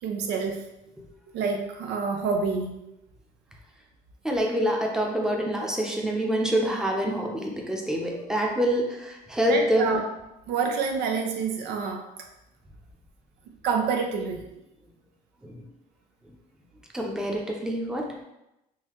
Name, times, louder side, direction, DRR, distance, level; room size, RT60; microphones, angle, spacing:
voice 1, 0.0-0.6 1.3-2.7 9.4-10.0 10.5-12.0 13.6-14.4, right 5 dB, 85° right, 3 dB, 0.6 m, -27 dB
voice 2, 4.2-10.0 15.4-15.6 16.9-18.1, equal, 5° right, 0 dB, 0.6 m, -26 dB
3.8 x 2.7 x 3.0 m, 0.90 s
cardioid pair, 110°, 17 cm